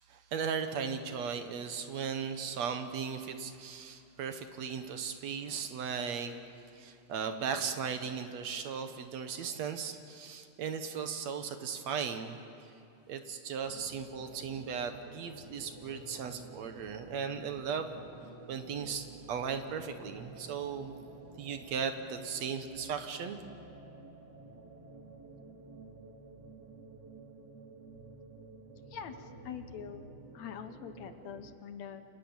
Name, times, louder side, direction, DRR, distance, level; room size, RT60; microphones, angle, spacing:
voice 1, 0.1-6.4 6.8-12.4 13.1-18.0 18.5-21.0 21.4-23.4, right 6 dB, 65° right, 7 dB, 2.4 m, -37 dB
sound 1, 13.6-31.6, right 3 dB, 35° right, 2.4 m, -51 dB
voice 2, 28.9-30.1 30.3-32.0, left 7 dB, 70° left, 9 dB, 2.2 m, -44 dB
29.5 x 26.5 x 7.3 m, 2.7 s
omnidirectional pair, 3.5 m